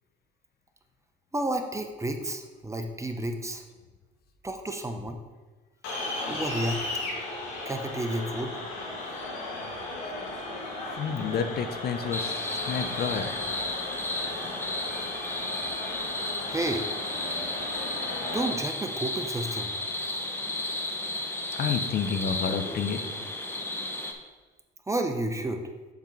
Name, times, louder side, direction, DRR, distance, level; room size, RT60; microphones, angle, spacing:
voice 1, 1.3-3.6 4.4-5.2 6.3-6.8 7.7-8.6 16.5-16.9 18.3-19.7 24.9-25.6, right 1 dB, 15° right, 5 dB, 0.9 m, -31 dB
sound 1, 5.8-18.5, left 2 dB, 85° left, 1.9 m, -36 dB
voice 2, 11.0-12.4 12.7-13.3 21.6-23.0, left 6 dB, 50° left, 8 dB, 0.7 m, -29 dB
sound 2, 12.1-24.1, left 2 dB, 10° left, 1.0 m, -33 dB
7.4 x 3.7 x 5.9 m, 1.3 s
supercardioid pair, 80°, 20 cm